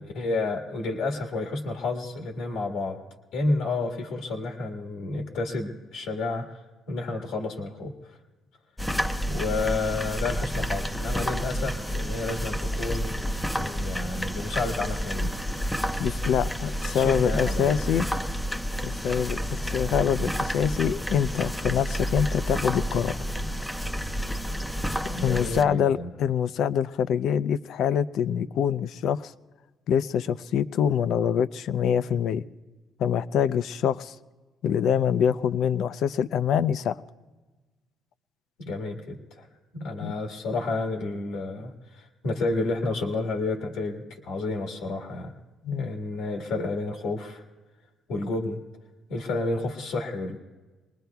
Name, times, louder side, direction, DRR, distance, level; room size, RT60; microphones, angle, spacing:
voice 1, 0.0-3.0 3.3-6.6 6.9-7.9 9.3-13.2 13.5-15.3 16.9-17.7 25.0-26.1 38.6-39.5 39.7-45.3 45.7-47.4 48.1-48.6 49.1-50.4, left 3 dB, 90° left, 2 dB, 1.5 m, -30 dB
sound 1, 8.8-25.6, equal, 5° left, 0.5 m, -30 dB
voice 2, 16.0-18.1 18.8-23.2 25.2-29.3 29.9-32.4 33.0-34.1 34.6-37.0 40.0-40.1 45.6-45.9, left 8 dB, 70° left, 15 dB, 0.4 m, -25 dB
24.0 x 20.0 x 2.3 m, 1.2 s
cardioid pair, 105°, 0 cm